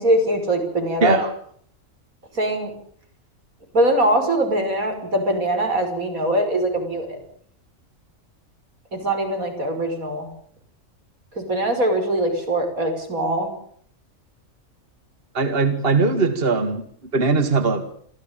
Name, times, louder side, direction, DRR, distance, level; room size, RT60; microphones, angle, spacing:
voice 1, 0.0-1.2 2.3-2.7 3.7-7.2 8.9-10.3 11.3-13.5, right 1 dB, 90° right, 4 dB, 6.2 m, -22 dB
voice 2, 1.0-1.3 15.3-16.8 17.1-17.8, right 4 dB, 45° right, 8 dB, 2.1 m, -20 dB
27.0 x 15.0 x 9.0 m, 0.62 s
omnidirectional pair, 1.4 m